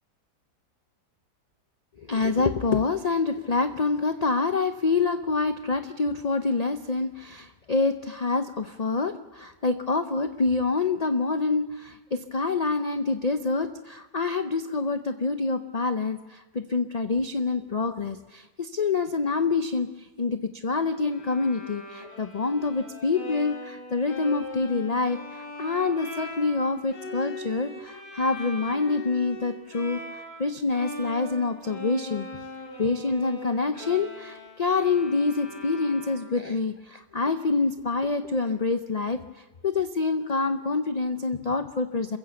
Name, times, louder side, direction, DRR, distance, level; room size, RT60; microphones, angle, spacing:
voice 1, 2.0-32.3 32.8-42.2, left 4 dB, 50° left, 8 dB, 0.4 m, -26 dB
Bowed string instrument, 21.1-30.5 30.7-36.5, left 1 dB, 90° left, 4.5 m, -40 dB
27.0 x 15.5 x 7.0 m, 1.2 s
omnidirectional pair, 1.7 m